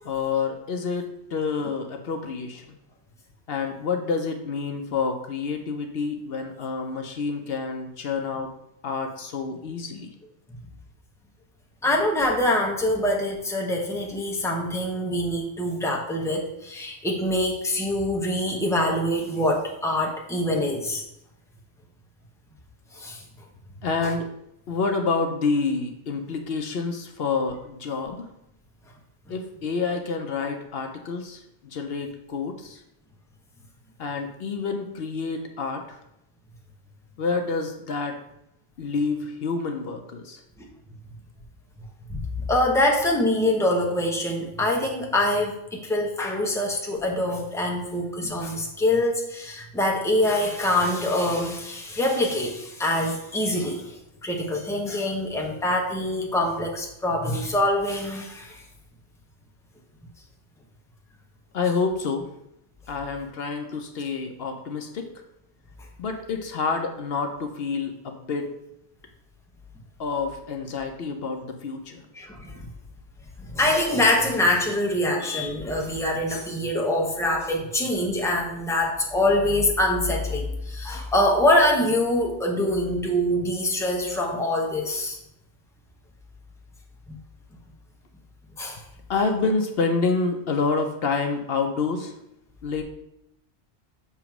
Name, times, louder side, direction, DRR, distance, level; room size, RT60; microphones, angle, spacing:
voice 1, 0.0-2.8 3.5-8.5 8.8-10.1 23.8-24.3 24.7-28.3 29.3-32.8 34.0-36.0 37.2-38.2 38.8-40.4 61.5-62.3 62.9-65.1 66.0-68.5 70.0-72.0 89.1-92.1 92.6-92.8, left 4 dB, 65° left, 4 dB, 0.9 m, -28 dB
voice 2, 11.8-21.0 22.9-23.2 24.0-24.1 40.6-40.7 42.1-58.6 72.1-72.7 73.4-85.2 87.1-87.2 88.6-88.8, left 1 dB, 5° left, 0 dB, 0.9 m, -24 dB
7.0 x 3.0 x 5.9 m, 0.81 s
omnidirectional pair, 1.1 m